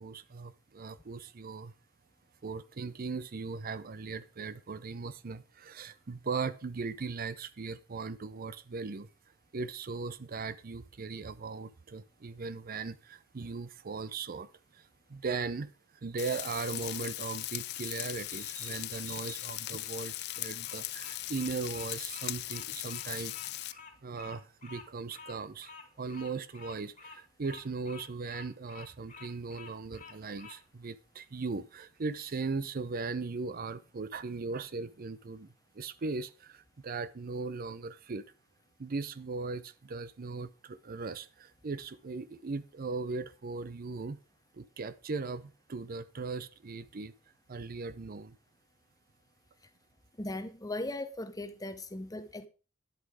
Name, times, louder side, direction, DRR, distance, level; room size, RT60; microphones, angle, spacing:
voice 1, 0.0-1.7 2.4-9.1 9.5-15.7 16.0-38.2 38.8-44.2 44.5-47.1 47.5-48.4, right 4 dB, 45° right, 0.6 m, -38 dB
Frying (food), 16.2-23.7, left 16 dB, 55° left, 0.4 m, -39 dB
Bird vocalization bird call bird song, 19.7-30.6, left 5 dB, 40° left, 2.1 m, -51 dB
voice 2, 50.2-52.5, left 1 dB, 20° left, 0.9 m, -38 dB
10.5 x 8.1 x 4.9 m
head